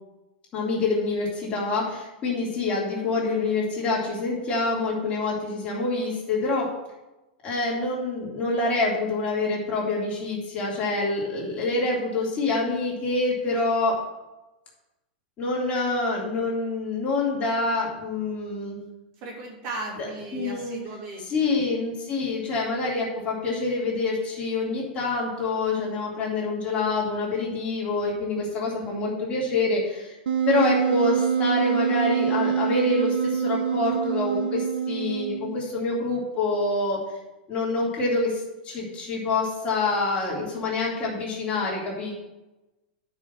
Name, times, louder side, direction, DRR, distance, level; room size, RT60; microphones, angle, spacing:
voice 1, 0.5-6.7 7.4-14.0 15.4-18.8 20.0-20.8 21.3-30.2 30.5-37.1 37.5-42.1, left 3 dB, 25° left, -4 dB, 3.2 m, -26 dB
voice 2, 19.2-21.6, right 2 dB, 45° right, -1 dB, 2.8 m, -37 dB
Wind instrument woodwind instrument, 30.3-35.7, right 7 dB, 85° right, 0.9 m, -25 dB
10.0 x 5.6 x 6.0 m, 1.0 s
supercardioid pair, 150°, 5 cm